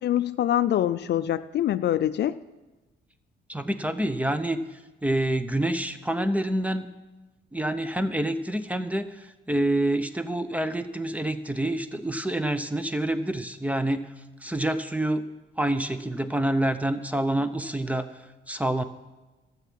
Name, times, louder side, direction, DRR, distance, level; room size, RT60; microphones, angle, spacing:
voice 1, 0.0-2.4, left 11 dB, 60° left, 14 dB, 0.4 m, -24 dB
voice 2, 3.5-6.9 7.5-14.1 14.4-15.3 15.6-18.1 18.5-18.8, right 1 dB, 5° right, 11 dB, 0.7 m, -27 dB
12.5 x 7.3 x 7.5 m, 1.2 s
cardioid pair, 90°, 20 cm